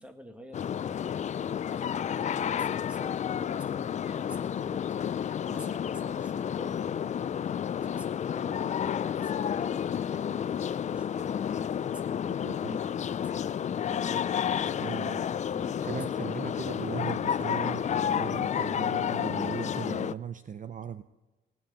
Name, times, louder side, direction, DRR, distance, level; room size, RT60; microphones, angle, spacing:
voice 1, 0.0-16.3, equal, 5° right, 6 dB, 1.9 m, -49 dB
sound 1, 0.5-20.1, left 8 dB, 35° left, 0.4 m, -31 dB
voice 2, 12.4-12.8 14.8-15.2 15.8-21.0, right 8 dB, 40° right, 12 dB, 0.6 m, -38 dB
18.5 x 9.3 x 5.5 m, 1.1 s
cardioid pair, 90°, 20 cm